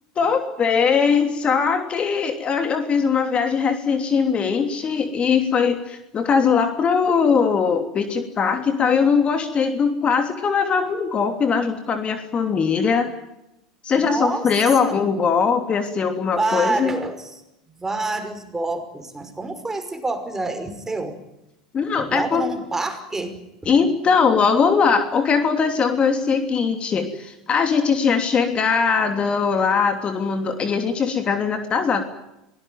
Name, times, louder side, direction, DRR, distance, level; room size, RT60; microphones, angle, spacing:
voice 1, 0.2-13.1 13.8-17.0 21.7-22.4 23.6-32.0, left 6 dB, 30° left, 6 dB, 3.1 m, -20 dB
voice 2, 14.0-14.5 14.8-15.0 16.3-17.3 17.8-21.2 22.0-23.4, right 2 dB, 10° right, 7 dB, 5.6 m, -27 dB
24.0 x 19.0 x 9.4 m, 0.88 s
hypercardioid pair, 90°, 3 cm